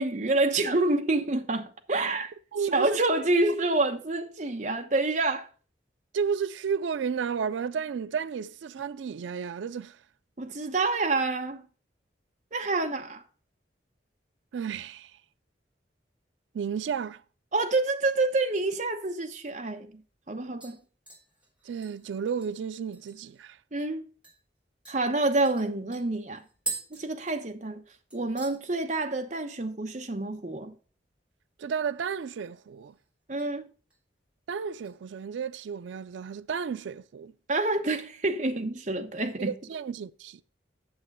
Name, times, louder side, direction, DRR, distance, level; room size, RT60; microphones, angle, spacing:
voice 1, 0.0-2.3 2.7-5.5 10.4-11.6 12.5-13.2 17.5-20.0 20.3-20.8 23.7-24.0 24.9-26.4 26.9-27.8 28.1-30.8 33.3-33.7 37.5-39.5, right 2 dB, 40° right, 1.0 m, -27 dB
voice 2, 2.5-3.0 6.1-10.0 14.5-15.1 16.5-17.2 21.6-23.6 31.6-32.9 34.5-37.3 39.4-40.4, right 6 dB, 90° right, 0.4 m, -32 dB
sound 1, 19.6-19.7 20.0-20.3 20.6-23.4 23.8-23.9 24.2-24.4 24.8-27.8 28.1-28.6 28.9-29.3 29.6-29.7 31.8-32.4 32.8-33.5 33.9-34.2 34.7-35.6 36.0-36.1, right 3 dB, 5° right, 3.2 m, -43 dB
8.7 x 6.8 x 5.3 m
head